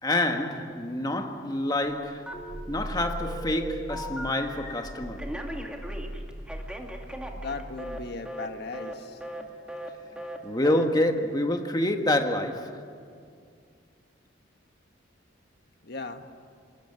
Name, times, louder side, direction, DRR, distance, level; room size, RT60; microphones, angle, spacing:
voice 1, 0.0-5.4 9.4-9.5 10.1-12.9, left 1 dB, 20° left, 1.6 m, -28 dB
Telephone, 2.3-2.9 3.2-4.8 5.2-8.0 8.3-8.5 8.7-8.9 9.2-9.4 9.7-9.9 10.2-10.4 10.6-10.9, equal, 5° right, 2.1 m, -38 dB
Growling, 2.3-8.2, equal, 50° right, 2.2 m, -40 dB
voice 2, 7.3-9.2 15.8-16.3, left 3 dB, 55° left, 1.5 m, -37 dB
27.5 x 20.0 x 9.8 m
head